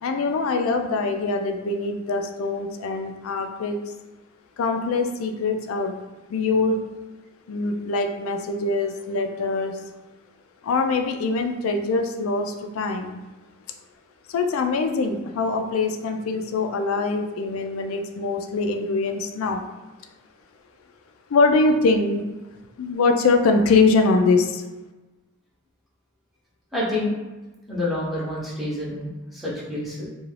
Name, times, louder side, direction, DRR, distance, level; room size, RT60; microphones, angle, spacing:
voice 1, 0.0-3.8 4.6-6.0 6.3-6.8 7.5-9.8 10.6-13.3 14.3-19.7 21.3-22.2 22.8-24.6, left 3 dB, 85° left, 5 dB, 0.3 m, -23 dB
voice 2, 26.7-27.1 27.7-30.1, left 1 dB, ahead, -8 dB, 0.7 m, -28 dB
2.4 x 2.3 x 3.2 m, 1.1 s
head